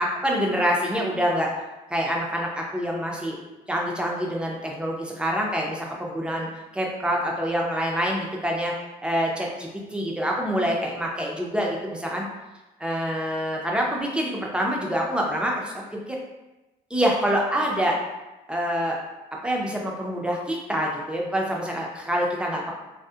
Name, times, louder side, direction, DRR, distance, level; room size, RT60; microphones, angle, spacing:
voice 1, 0.0-1.5 1.9-3.4 3.7-6.5 6.7-8.7 9.0-12.3 12.8-16.2 16.9-18.0 18.5-19.0 19.4-22.7, equal, 5° right, -1 dB, 0.4 m, -26 dB
2.6 x 2.0 x 2.3 m, 1.0 s
cardioid pair, 110°, 17 cm